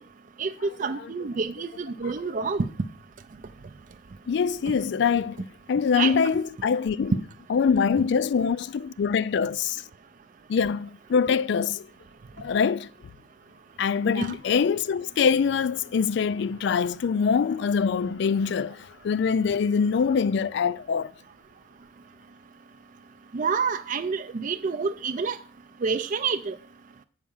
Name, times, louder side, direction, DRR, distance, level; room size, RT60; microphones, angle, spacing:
voice 1, 0.8-2.7 5.9-6.2 14.1-14.4 23.3-25.4 25.8-26.5, right 5 dB, 40° right, 0.4 m, -28 dB
voice 2, 4.3-5.4 5.7-7.2 7.5-9.8 10.5-11.9 12.4-12.9 13.8-18.8 19.0-21.1, left 6 dB, 60° left, 0.3 m, -24 dB
8.4 x 4.7 x 7.1 m
head